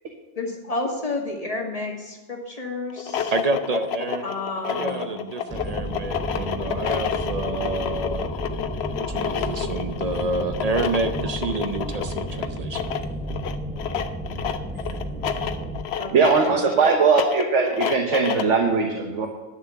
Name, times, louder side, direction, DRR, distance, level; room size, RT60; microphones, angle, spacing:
voice 1, 0.4-3.3 4.2-5.3 16.0-16.7, left 2 dB, 30° left, 0 dB, 1.9 m, -31 dB
sound 1, 2.9-18.6, left 8 dB, 65° left, 0.9 m, -30 dB
voice 2, 3.3-4.3 4.6-8.3 9.0-12.9 16.5-16.8, right 3 dB, 40° right, 8 dB, 0.8 m, -28 dB
sound 2, 5.5-15.8, right 1 dB, ahead, 0.9 m, -32 dB
voice 3, 16.1-19.3, right 5 dB, 80° right, 3 dB, 1.4 m, -20 dB
11.0 x 6.9 x 6.9 m, 1.2 s
omnidirectional pair, 1.2 m